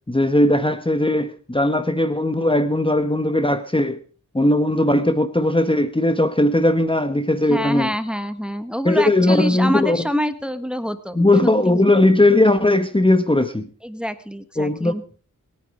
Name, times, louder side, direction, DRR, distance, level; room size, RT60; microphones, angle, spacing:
voice 1, 0.1-4.0 4.3-7.9 8.8-10.0 11.1-13.7 14.6-14.9, left 1 dB, 15° left, 1.2 m, -18 dB
voice 2, 7.5-11.5 13.8-15.0, equal, 5° right, 1.3 m, -26 dB
21.0 x 9.5 x 4.8 m
wide cardioid pair, 55°, 33 cm